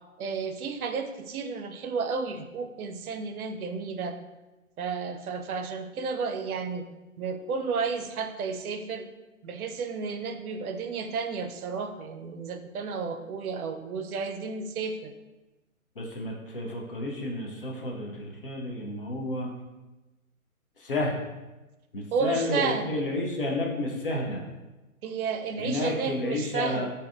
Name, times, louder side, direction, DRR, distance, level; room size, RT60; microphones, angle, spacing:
voice 1, 0.2-4.2 4.8-6.9 7.2-9.1 9.4-15.1 22.1-23.0 25.0-26.9, right 5 dB, 80° right, 7 dB, 0.5 m, -32 dB
voice 2, 16.0-19.5 20.8-21.2 21.9-24.4 25.6-26.9, left 1 dB, 40° left, -1 dB, 0.4 m, -31 dB
3.4 x 2.6 x 2.4 m, 1.1 s
hypercardioid pair, 155°, 43 cm